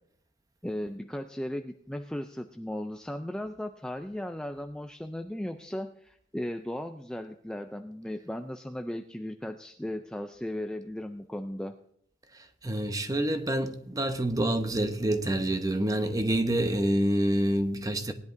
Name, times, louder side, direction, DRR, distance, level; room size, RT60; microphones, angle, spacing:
voice 1, 0.6-11.7, left 1 dB, 5° left, 0.4 m, -36 dB
voice 2, 12.3-18.1, right 1 dB, 20° right, 0.8 m, -27 dB
18.5 x 10.5 x 2.6 m
head